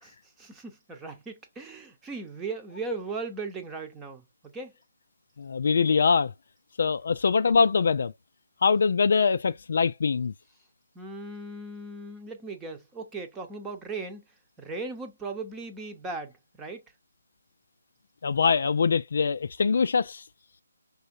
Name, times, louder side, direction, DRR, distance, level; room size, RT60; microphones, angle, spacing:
voice 1, 0.0-4.7 10.9-14.2 14.6-16.8, right 3 dB, 10° right, 0.9 m, -38 dB
voice 2, 5.4-6.3 6.8-8.1 8.6-10.3 18.2-20.2, left 5 dB, 60° left, 0.4 m, -23 dB
5.5 x 3.5 x 2.7 m
figure-of-eight pair, 155°, 0 cm